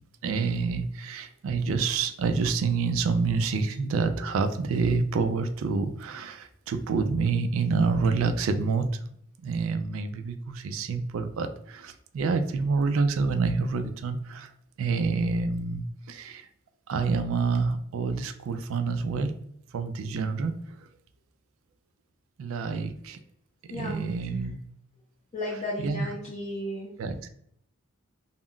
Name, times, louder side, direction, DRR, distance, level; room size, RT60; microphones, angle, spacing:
voice 1, 0.2-8.9 9.4-14.5 14.8-16.5 16.9-19.4 19.7-20.5 22.4-23.2 23.7-24.6 25.8-26.1 27.0-27.3, right 4 dB, 75° right, 8 dB, 0.3 m, -27 dB
voice 2, 23.7-24.2 25.3-27.0, left 1 dB, 30° left, -7 dB, 0.5 m, -34 dB
2.2 x 2.0 x 3.6 m, 0.68 s
head